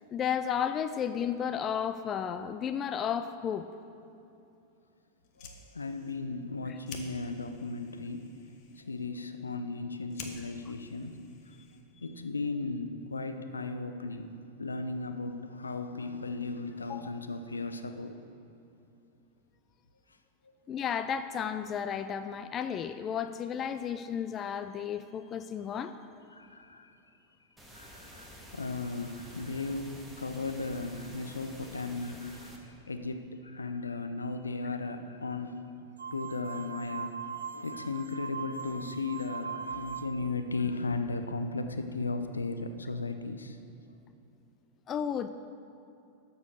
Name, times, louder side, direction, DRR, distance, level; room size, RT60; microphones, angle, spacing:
voice 1, 0.1-3.7 16.9-17.1 20.7-26.0 44.9-45.3, left 8 dB, 30° left, 11 dB, 0.4 m, -33 dB
Fire, 5.2-12.1, left 5 dB, 45° left, 1.2 m, -51 dB
voice 2, 5.4-8.3 8.8-11.6 12.0-14.3 14.6-18.2 26.3-27.0 27.7-35.6 36.1-43.6, left 3 dB, 75° left, 8 dB, 0.7 m, -36 dB
sound 1, 27.6-32.6, equal, 5° right, 1.7 m, -50 dB
sound 2, 36.0-40.4, right 6 dB, 70° right, 0.3 m, -40 dB
12.5 x 7.0 x 6.5 m, 2.7 s
figure-of-eight pair, 90°, 0 cm